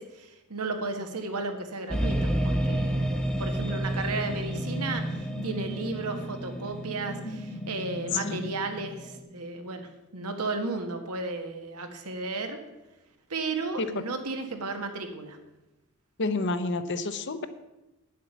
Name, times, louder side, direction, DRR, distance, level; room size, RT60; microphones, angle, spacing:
voice 1, 0.0-3.0 3.4-12.6 13.3-15.4, right 3 dB, 90° right, 5 dB, 1.5 m, -34 dB
sound 1, 1.9-9.2, right 1 dB, 5° left, 1.1 m, -31 dB
sound 2, 3.5-9.9, equal, 85° left, 1.1 m, -40 dB
voice 2, 16.2-17.4, left 3 dB, 50° left, 10 dB, 0.7 m, -29 dB
9.6 x 7.6 x 7.0 m, 0.99 s
head